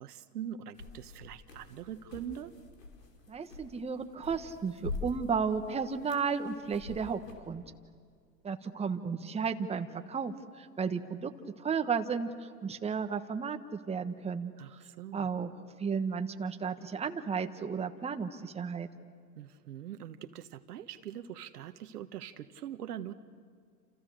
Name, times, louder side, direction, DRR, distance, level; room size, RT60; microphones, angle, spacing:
voice 1, 0.0-2.5 14.6-15.3 19.4-23.1, right 10 dB, 75° right, 11 dB, 1.4 m, -43 dB
sound 1, 0.7-7.5, left 4 dB, 85° left, 4.7 m, -45 dB
voice 2, 3.3-7.2 7.5-7.6 8.4-11.3 11.6-14.5 15.1-15.5 15.8-18.9, right 6 dB, 15° right, 6 dB, 1.3 m, -33 dB
29.0 x 29.0 x 6.6 m, 2.1 s
hypercardioid pair, 100°, 48 cm